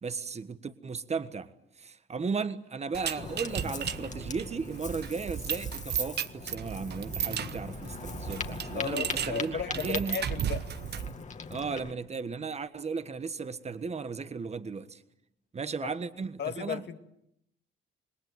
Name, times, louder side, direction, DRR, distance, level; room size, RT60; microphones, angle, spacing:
voice 1, 0.0-1.5 1.8-10.2 11.5-15.0 15.5-16.8, right 5 dB, 35° right, 1.5 m, -35 dB
sound 1, 2.9-11.2, right 9 dB, 55° right, 1.1 m, -35 dB
Ocean, 3.2-11.9, left 5 dB, 35° left, 2.2 m, -41 dB
voice 2, 8.7-10.7 15.8-15.9 16.4-17.0, left 7 dB, 60° left, 2.0 m, -35 dB
27.5 x 20.5 x 9.2 m
cardioid pair, 90°, 20 cm